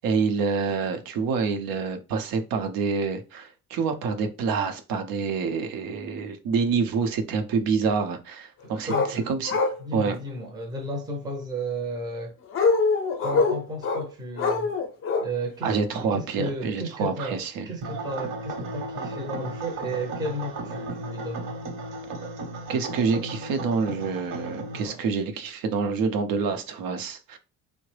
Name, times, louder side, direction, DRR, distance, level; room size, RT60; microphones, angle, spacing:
voice 1, 0.0-9.6 9.9-10.2 15.6-17.6 22.7-27.4, right 5 dB, 80° right, 0.7 m, -27 dB
voice 2, 8.6-9.2 9.8-12.4 13.2-14.7 15.2-17.4 17.7-21.6 24.8-25.0, right 1 dB, 10° right, 0.5 m, -33 dB
sound 1, 8.9-9.1 9.5-9.8 12.5-14.0 14.4-15.3 15.6-15.8, left 4 dB, 40° left, 0.5 m, -23 dB
sound 2, 17.8-24.9, right 2 dB, 60° right, 1.0 m, -35 dB
3.7 x 2.1 x 3.1 m
cardioid pair, 165°, 34 cm